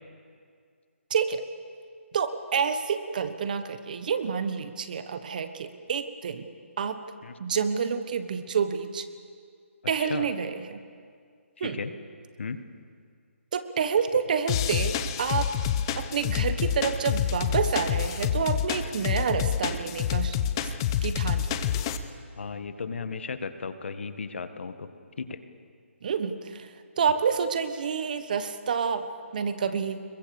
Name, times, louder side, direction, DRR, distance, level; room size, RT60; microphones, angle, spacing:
voice 1, 1.1-1.4 2.1-6.5 6.8-7.0 7.4-9.0 9.9-10.8 11.6-11.8 13.5-15.5 16.0-20.3 21.0-21.6 26.0-26.7 27.0-29.1 29.3-30.0, right 6 dB, 35° right, 10 dB, 1.3 m, -28 dB
sound 1, 14.5-22.0, left 9 dB, 20° left, 0.8 m, -28 dB
voice 2, 22.4-24.9 25.2-25.4, left 5 dB, 55° left, 10 dB, 1.7 m, -35 dB
27.5 x 22.5 x 7.1 m, 2.2 s
hypercardioid pair, 170°, 7 cm